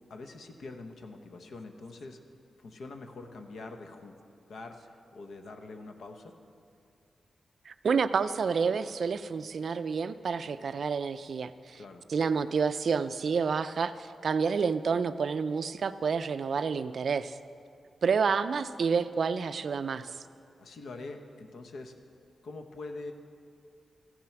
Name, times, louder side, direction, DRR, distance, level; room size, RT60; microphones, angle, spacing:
voice 1, 0.1-2.2 2.6-6.4 11.7-12.1 20.6-21.9 22.4-23.1, left 3 dB, 70° left, 5 dB, 0.9 m, -44 dB
voice 2, 7.7-11.8 12.1-17.4 18.0-20.1, right 5 dB, 55° right, 13 dB, 0.3 m, -29 dB
14.5 x 7.5 x 5.9 m, 2.4 s
wide cardioid pair, 180°, 0 cm